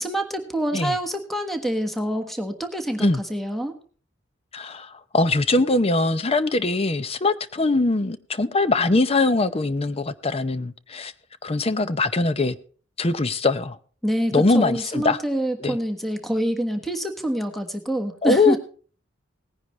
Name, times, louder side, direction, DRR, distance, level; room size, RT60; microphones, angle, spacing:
voice 1, 0.0-3.8 14.0-18.6, right 1 dB, ahead, 1.3 m, -26 dB
voice 2, 4.5-11.1 11.4-12.6 13.0-13.8 14.3-15.2 15.6-15.8 18.2-18.6, left 3 dB, 30° left, 0.6 m, -22 dB
18.5 x 10.0 x 3.1 m
head